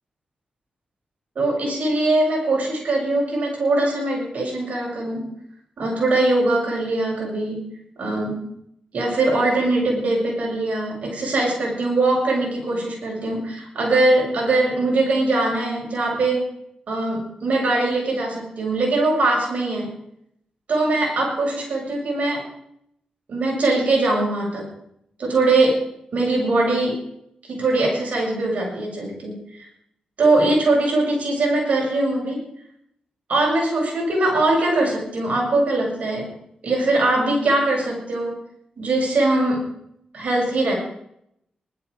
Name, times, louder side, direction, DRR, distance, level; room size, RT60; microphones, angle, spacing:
voice 1, 1.3-5.3 5.8-8.5 8.9-16.4 16.9-20.0 20.7-22.5 23.3-24.7 25.2-25.8 26.1-27.0 27.5-29.6 30.2-32.4 33.3-38.4 38.8-39.7 40.1-40.8, right 2 dB, 65° right, -2 dB, 6.8 m, -21 dB
20.5 x 12.0 x 4.9 m, 0.74 s
cardioid pair, 70°, 3 cm